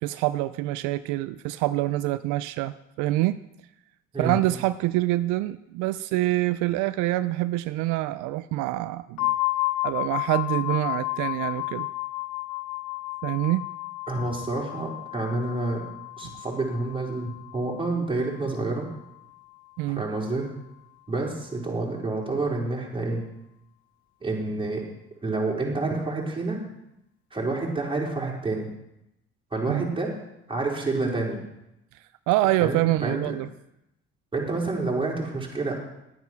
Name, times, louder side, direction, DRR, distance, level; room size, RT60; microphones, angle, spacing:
voice 1, 0.0-3.4 4.2-9.3 9.8-11.9 13.2-13.6 19.8-20.0 29.7-29.9 32.3-33.5, right 16 dB, 85° right, 14 dB, 0.5 m, -26 dB
sound 1, 9.2-18.8, left 20 dB, 75° left, 0.7 m, -32 dB
voice 2, 14.1-15.8 16.2-18.9 20.0-20.5 21.1-23.2 24.2-24.8 25.2-26.6 27.3-28.7 29.5-30.1 30.5-31.4 32.6-33.3 34.3-35.7, right 2 dB, 15° right, -3 dB, 4.5 m, -28 dB
11.0 x 9.4 x 6.1 m, 0.86 s
supercardioid pair, 75°, 29 cm